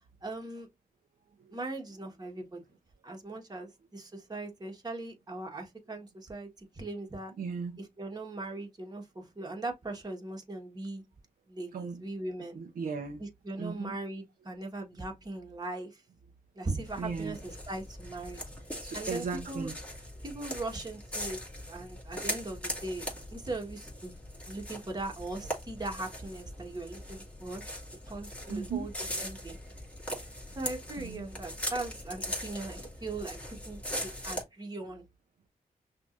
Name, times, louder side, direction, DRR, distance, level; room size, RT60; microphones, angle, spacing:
voice 1, 0.2-0.7 1.5-2.6 3.0-7.3 8.0-11.0 11.5-12.6 13.4-16.0 16.5-18.4 18.9-19.7 20.2-21.4 21.7-24.1 24.5-27.6 28.1-28.9 29.2-29.6 30.5-35.0, right 2 dB, 25° right, 1.5 m, -39 dB
voice 2, 7.4-7.8 11.7-12.0 12.5-13.2 13.6-13.9 15.5-15.6 17.0-17.4 18.8-19.8 28.5-28.9 31.0-31.3 34.9-35.0, right 5 dB, 75° right, 0.8 m, -37 dB
sound 1, 16.8-34.4, equal, 10° left, 2.5 m, -40 dB
6.0 x 2.7 x 2.6 m
cardioid pair, 75°, 15 cm